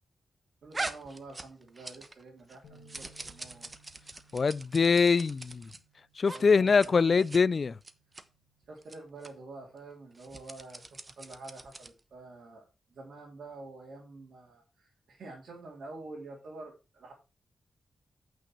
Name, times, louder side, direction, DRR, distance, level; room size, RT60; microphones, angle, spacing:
voice 1, 0.6-3.7 6.3-7.2 8.7-10.9 11.2-17.1, right 3 dB, 75° right, 3.2 m, -47 dB
sound 1, 0.7-2.2 2.5-5.8 6.2-6.4 6.7-6.9 7.2-7.4 7.8-8.2 8.8-9.0 9.2-9.3 10.1-12.0, right 2 dB, 35° right, 1.1 m, -42 dB
sound 2, 2.6-8.9, right 2 dB, 85° left, 1.6 m, -62 dB
voice 2, 4.3-5.7 6.2-7.8, left 5 dB, 55° left, 0.4 m, -24 dB
8.4 x 6.2 x 4.6 m
cardioid pair, 50°, 0 cm